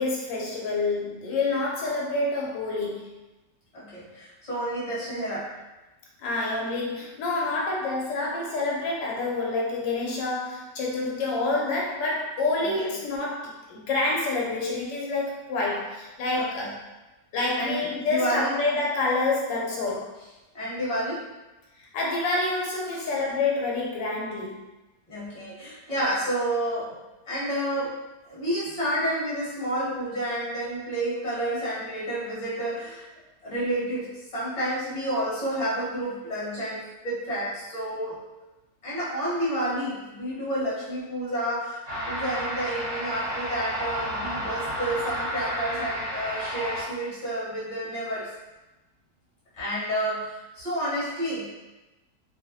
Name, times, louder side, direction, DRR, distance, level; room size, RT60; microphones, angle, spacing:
voice 1, 0.0-3.1 6.2-16.8 17.3-20.1 21.8-24.6, left 3 dB, 90° left, -3 dB, 1.3 m, -28 dB
voice 2, 3.7-5.5 12.6-12.9 16.4-16.7 17.6-18.5 20.5-21.2 22.9-23.1 25.1-26.9 27.2-27.9 28.3-33.1 33.4-38.2 38.8-48.3 49.6-51.5, right 1 dB, 25° left, -9 dB, 1.0 m, -30 dB
sound 1, 41.9-46.8, equal, 35° right, 0.6 m, -31 dB
2.8 x 2.4 x 2.6 m, 1.1 s
omnidirectional pair, 1.9 m